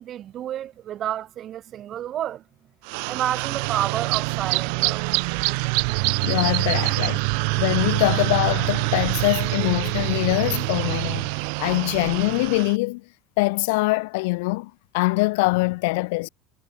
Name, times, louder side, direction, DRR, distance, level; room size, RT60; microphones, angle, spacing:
voice 1, 0.0-2.4 3.1-5.1, right 11 dB, 30° right, 7.3 m, -30 dB
sound 1, 2.9-12.7, right 40 dB or more, 65° right, 2.3 m, -25 dB
voice 2, 6.1-7.3 7.6-11.3 11.6-13.0 13.4-16.3, left 25 dB, 75° left, 3.0 m, -23 dB
cardioid pair, 175°, 0 cm